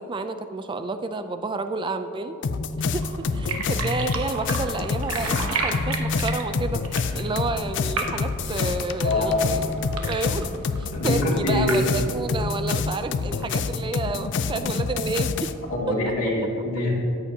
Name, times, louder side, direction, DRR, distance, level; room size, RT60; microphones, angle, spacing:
voice 1, 0.0-2.4 2.9-6.8 7.1-9.7 10.1-15.5 15.9-16.0, right 3 dB, 20° right, 9 dB, 0.4 m, -30 dB
sound 1, 2.4-15.5, left 4 dB, 60° left, 0.4 m, -27 dB
sound 2, 2.9-12.4, right 3 dB, 80° right, 1.1 m, -34 dB
voice 2, 9.0-9.5 10.9-11.8 15.8-16.9, left 2 dB, 80° left, -4 dB, 2.5 m, -24 dB
13.5 x 9.7 x 2.8 m, 3.0 s
head